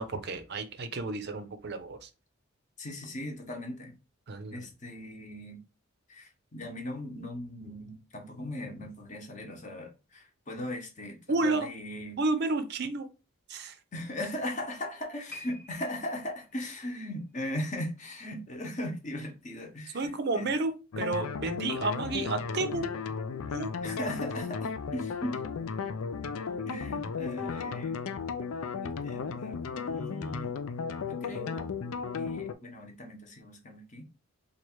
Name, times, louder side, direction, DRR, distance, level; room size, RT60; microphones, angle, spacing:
voice 1, 0.0-2.1 4.3-4.7 11.3-11.7 12.2-13.1 13.5-13.8 19.9-22.9 23.5-23.8, right 3 dB, 50° right, 0.5 m, -31 dB
voice 2, 2.8-4.0 4.5-5.6 6.1-12.2 13.9-20.1 20.4-20.5 23.8-25.4 26.7-28.0 28.8-29.6 29.8-30.6 31.0-31.7 32.1-34.0, left 1 dB, 35° left, 0.9 m, -38 dB
sound 1, 15.3-18.6 18.9-19.2 19.8-19.9, left 1 dB, 5° left, 1.0 m, -51 dB
sound 2, 20.9-32.5, left 5 dB, 85° left, 0.4 m, -35 dB
3.1 x 2.4 x 4.4 m
head